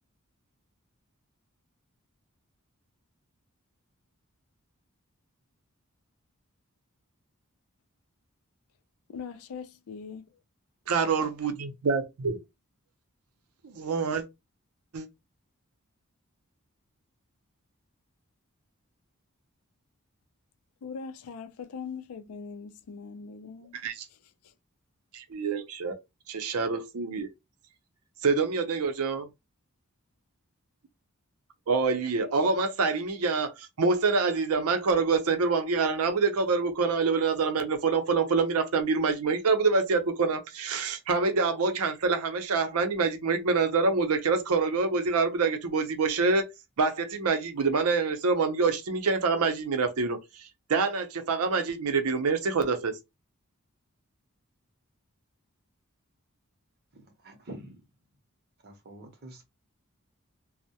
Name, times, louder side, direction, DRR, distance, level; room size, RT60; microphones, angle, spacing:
voice 1, 9.1-10.3 20.8-23.7, left 5 dB, 90° left, 0.4 m, -41 dB
voice 2, 10.9-12.4 13.6-14.2 14.9-15.1 23.7-24.1 25.1-26.0 26.3-27.3 28.2-29.3 31.7-46.5 46.8-50.2 50.7-52.9, right 4 dB, 85° right, 0.5 m, -26 dB
voice 3, 56.9-57.8 58.6-59.4, right 1 dB, 45° right, 0.7 m, -46 dB
2.2 x 2.0 x 2.7 m
head